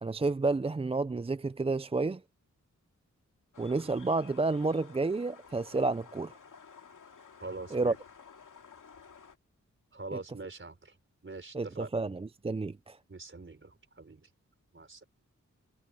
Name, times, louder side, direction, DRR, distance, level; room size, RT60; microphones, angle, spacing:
voice 1, 0.0-2.2 3.6-6.4 7.7-7.9 10.1-10.2 11.5-13.0, right 3 dB, 20° right, 0.4 m, -30 dB
sound 1, 3.5-9.4, left 6 dB, 85° left, 2.5 m, -53 dB
voice 2, 7.4-7.9 9.9-10.9 11.2-11.9 13.1-14.3 14.7-15.0, right 3 dB, 40° right, 4.6 m, -43 dB
wide cardioid pair, 100°, 31 cm